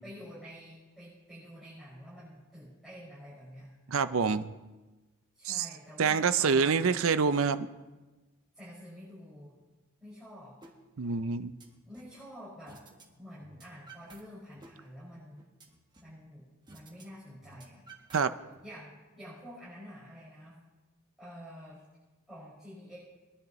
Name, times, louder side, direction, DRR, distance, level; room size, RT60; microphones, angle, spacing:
voice 1, 0.0-3.7 5.3-6.9 8.5-9.5 10.0-10.6 11.0-11.1 11.8-12.8 13.2-15.5 16.0-17.9 18.6-20.6 21.2-21.8 22.3-23.0, equal, ahead, -12 dB, 5.7 m, -48 dB
voice 2, 3.9-4.5 5.5-5.7 6.0-7.7 11.0-11.5 18.1-18.3, right 5 dB, 65° right, 12 dB, 0.5 m, -26 dB
sound 1, 10.6-10.7 11.1-12.2 12.7-13.1 13.3-14.2 14.5-16.2 16.7-17.0 17.3-18.6, right 3 dB, 20° right, 1.4 m, -54 dB
22.5 x 10.5 x 3.1 m, 1.2 s
head